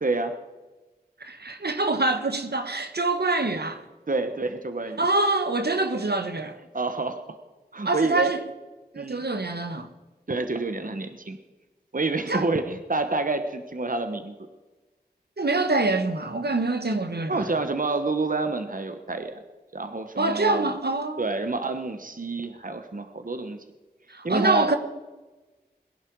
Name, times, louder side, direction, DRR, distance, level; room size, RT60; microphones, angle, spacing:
voice 1, 0.0-0.3 4.1-5.1 6.7-7.4 7.7-8.3 9.0-9.2 10.3-11.4 11.9-14.3 17.3-19.4 19.7-20.7 21.2-23.6 24.2-24.8, right 3 dB, 55° right, 1.2 m, -28 dB
voice 2, 1.2-3.8 5.0-6.5 7.8-8.4 8.9-9.9 12.3-12.5 15.4-17.5 20.2-21.3 24.1-24.8, right 2 dB, 75° right, 1.4 m, -25 dB
21.5 x 11.0 x 4.8 m
wide cardioid pair, 45°, 17 cm